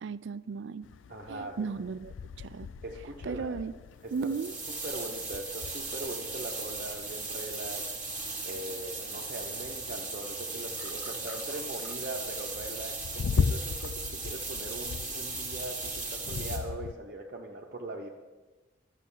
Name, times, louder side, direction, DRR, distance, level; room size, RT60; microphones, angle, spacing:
voice 1, 0.0-0.9 1.3-2.7 3.2-3.7 4.1-4.5, right 5 dB, 70° right, 16 dB, 0.4 m, -35 dB
sound 1, 0.8-16.9, left 6 dB, 80° left, 0.4 m, -39 dB
voice 2, 1.1-1.7 2.8-3.5 4.0-4.1 4.8-7.9 8.4-18.1, right 1 dB, 50° right, -2 dB, 0.9 m, -40 dB
sound 2, 4.1-16.6, right 3 dB, 10° right, 1.7 m, -37 dB
12.5 x 7.4 x 5.6 m, 1.2 s
head